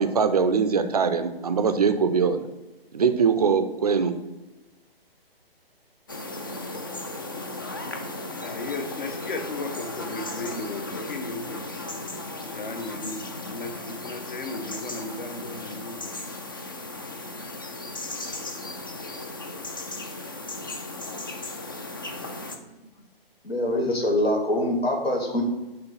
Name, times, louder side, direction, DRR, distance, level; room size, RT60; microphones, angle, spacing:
voice 1, 0.0-2.4 2.9-4.2, right 5 dB, 40° right, 10 dB, 0.4 m, -22 dB
sound 1, 6.1-22.6, left 2 dB, 25° left, 0.3 m, -36 dB
voice 2, 8.4-11.7 12.4-16.2 19.9-20.0 20.3-20.9 21.9-22.0 22.4-22.9, left 3 dB, 55° left, 6 dB, 1.0 m, -36 dB
voice 3, 23.4-25.4, left 1 dB, 80° left, 2 dB, 1.7 m, -24 dB
5.9 x 3.2 x 5.5 m, 1.1 s
figure-of-eight pair, 135°, 30 cm